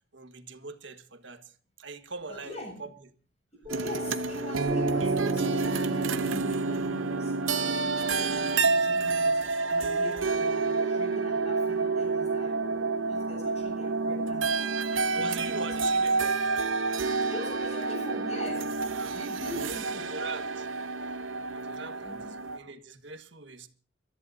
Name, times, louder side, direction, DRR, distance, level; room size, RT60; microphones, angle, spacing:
voice 1, 0.1-1.5 1.8-2.9 15.1-16.4 18.9-19.1 19.5-20.7 21.3-23.7, right 4 dB, 65° right, 1.6 m, -42 dB
voice 2, 2.3-2.8 3.5-15.7 16.1-16.4 17.3-18.8 19.1-20.2 22.0-22.3, left 1 dB, 35° left, 7.7 m, -43 dB
Piano, 3.6-10.7, right 1 dB, 25° right, 3.4 m, -37 dB
sound 1, 3.7-22.6, right 4 dB, 85° right, 1.0 m, -29 dB
28.5 x 14.0 x 2.8 m
head